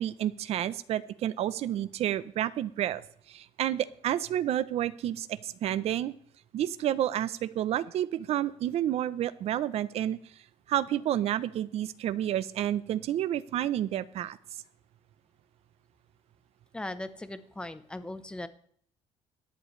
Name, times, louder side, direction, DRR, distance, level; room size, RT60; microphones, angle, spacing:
voice 1, 0.0-3.0 3.3-6.1 6.5-10.2 10.7-14.4, right 11 dB, 60° right, 15 dB, 0.7 m, -30 dB
voice 2, 16.7-18.5, left 1 dB, 10° left, 11 dB, 0.8 m, -38 dB
18.0 x 11.0 x 3.3 m, 0.62 s
cardioid pair, 150°, 12 cm